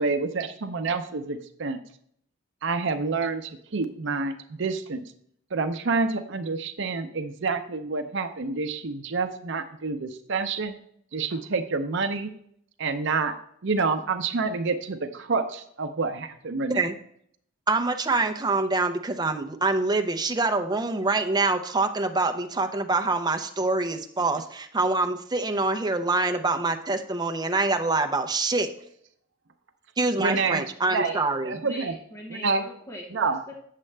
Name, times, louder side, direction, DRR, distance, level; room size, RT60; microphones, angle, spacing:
voice 1, 0.0-1.8 2.6-5.0 5.5-10.8 11.1-12.3 12.8-13.4 13.6-16.8 30.2-31.1 31.4-31.9 32.3-32.6 33.1-33.4, right 4 dB, 65° right, 9 dB, 0.7 m, -28 dB
voice 2, 17.7-28.7 30.0-31.6, right 3 dB, 20° right, 5 dB, 0.6 m, -25 dB
voice 3, 30.1-30.5 30.8-31.2 31.5-33.5, left 1 dB, 15° left, -1 dB, 1.0 m, -42 dB
8.4 x 7.5 x 3.3 m, 0.67 s
head